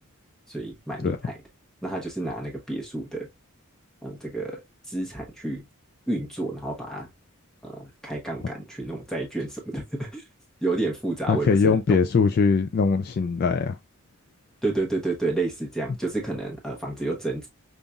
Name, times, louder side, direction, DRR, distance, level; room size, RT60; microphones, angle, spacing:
voice 1, 0.5-1.3 1.8-3.3 4.0-4.6 4.9-5.6 6.1-7.1 7.6-10.2 10.6-12.0 14.6-17.5, right 2 dB, 5° left, 0.9 m, -30 dB
voice 2, 11.3-13.8, left 5 dB, 45° left, 0.3 m, -21 dB
5.3 x 2.5 x 2.2 m
head